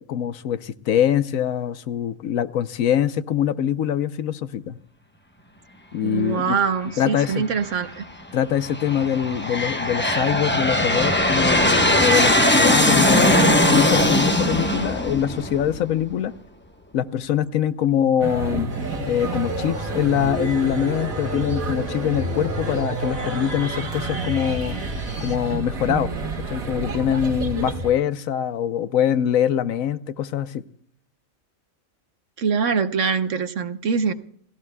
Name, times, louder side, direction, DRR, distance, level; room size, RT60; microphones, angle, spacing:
voice 1, 0.0-4.8 5.9-6.6 7.0-7.5 8.3-16.3 16.9-18.7 19.1-24.8 25.2-30.6, left 9 dB, 75° left, 1.2 m, -23 dB
voice 2, 6.0-8.0 32.4-34.1, right 6 dB, 65° right, 1.2 m, -23 dB
Aircraft, 7.2-7.8 8.5-16.0, left 1 dB, 10° left, 0.9 m, -20 dB
sound 1, 18.2-27.9, right 3 dB, 85° right, 2.1 m, -30 dB
sound 2, 18.7-25.4, right 2 dB, 35° right, 2.0 m, -34 dB
29.0 x 17.0 x 2.3 m
omnidirectional pair, 1.4 m